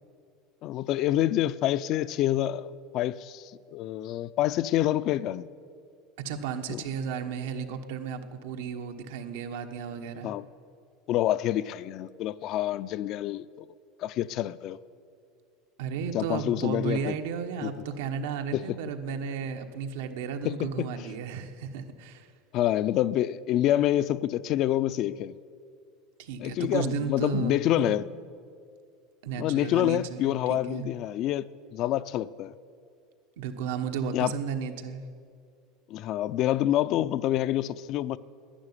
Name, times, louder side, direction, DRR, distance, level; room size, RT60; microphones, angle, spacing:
voice 1, 0.6-5.5 6.7-6.8 10.2-10.5 11.1-13.5 14.0-14.8 16.1-17.1 17.6-17.7 18.5-18.8 20.4-20.9 22.5-25.4 26.4-28.1 29.4-32.5 34.1-34.3 35.9-38.2, left 13 dB, 45° left, 0.4 m, -27 dB
voice 2, 6.2-10.3 15.8-22.3 26.2-28.0 29.2-30.9 33.4-35.0, right 6 dB, 85° right, 1.2 m, -34 dB
11.5 x 10.5 x 9.8 m
supercardioid pair, 155°, 0 cm